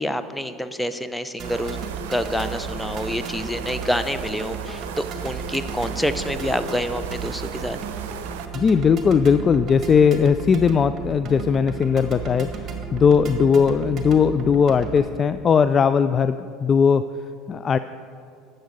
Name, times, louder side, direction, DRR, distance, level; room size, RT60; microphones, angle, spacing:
voice 1, 0.0-1.8 2.1-7.8, equal, 5° left, 10 dB, 0.7 m, -27 dB
sound 1, 1.4-15.1, right 5 dB, 40° right, 1.8 m, -34 dB
sound 2, 1.4-8.5, right 8 dB, 75° right, 0.7 m, -37 dB
voice 2, 8.5-17.0 17.5-17.8, left 6 dB, 35° left, 12 dB, 0.3 m, -19 dB
12.0 x 7.9 x 5.3 m, 2.4 s
hypercardioid pair, 75°, 0 cm